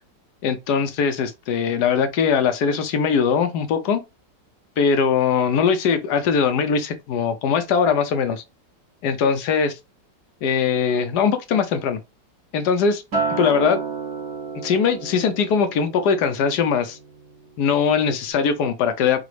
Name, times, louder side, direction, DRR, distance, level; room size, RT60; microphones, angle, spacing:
voice 1, 0.4-4.0 4.8-8.4 9.0-9.8 10.4-12.0 12.5-13.0 13.4-13.8 14.6-17.0 17.6-19.2, left 6 dB, 75° left, 1.2 m, -21 dB
Acoustic guitar, 13.1-17.5 17.9-18.3, right 4 dB, 55° right, 2.0 m, -31 dB
4.9 x 2.4 x 3.2 m
omnidirectional pair, 1.9 m